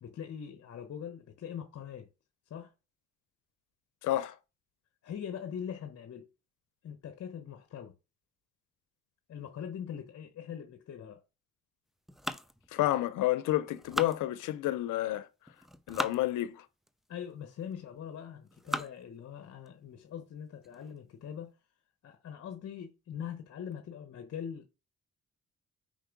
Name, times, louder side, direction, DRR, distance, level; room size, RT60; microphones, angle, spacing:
voice 1, 0.0-2.1 2.5-2.7 5.0-6.3 6.8-8.0 9.3-11.2 17.1-21.6 22.0-24.7, left 8 dB, 55° left, 1.0 m, -42 dB
voice 2, 4.0-4.3 12.7-15.3 15.9-16.6, left 14 dB, 85° left, 0.7 m, -30 dB
sound 1, 12.1-13.3 13.7-14.8 15.5-16.2 16.9-17.0 17.7-18.0 18.5-19.1 19.7-19.8 20.1-20.2 20.6-21.0, equal, ahead, 0.4 m, -38 dB
5.3 x 4.6 x 5.2 m
cardioid pair, 90°, 30 cm